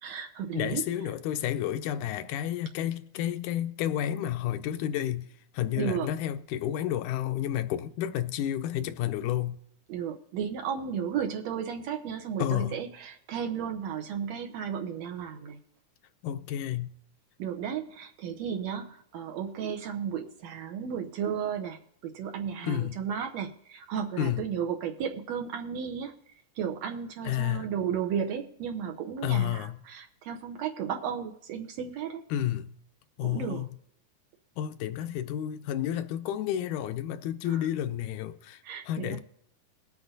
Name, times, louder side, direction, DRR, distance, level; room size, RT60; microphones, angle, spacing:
voice 1, 0.0-0.8 5.8-6.1 9.9-15.6 17.4-26.1 26.6-32.2 33.2-33.7 37.5-37.7 38.6-39.2, right 8 dB, 70° right, 1.9 m, -34 dB
voice 2, 0.5-5.3 5.5-9.6 12.4-12.8 16.2-16.9 22.6-23.0 24.2-24.4 27.2-27.7 29.2-29.8 32.3-32.8 33.2-33.7 34.6-39.2, left 11 dB, 80° left, 2.1 m, -31 dB
21.5 x 8.1 x 2.6 m
omnidirectional pair, 3.6 m